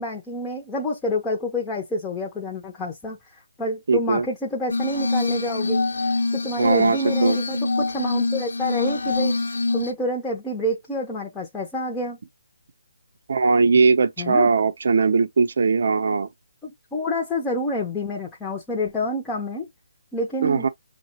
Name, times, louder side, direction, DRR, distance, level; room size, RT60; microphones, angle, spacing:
voice 1, 0.0-5.8 6.3-9.4 9.7-12.2 14.2-14.5 16.6-19.7 20.1-20.7, left 1 dB, 10° left, 0.4 m, -28 dB
voice 2, 3.9-4.2 6.6-7.4 13.3-16.3 20.4-20.7, right 4 dB, 55° right, 0.5 m, -20 dB
Glass, 4.7-9.9, left 3 dB, 75° left, 0.7 m, -24 dB
5.5 x 2.0 x 2.8 m
hypercardioid pair, 170°, 0 cm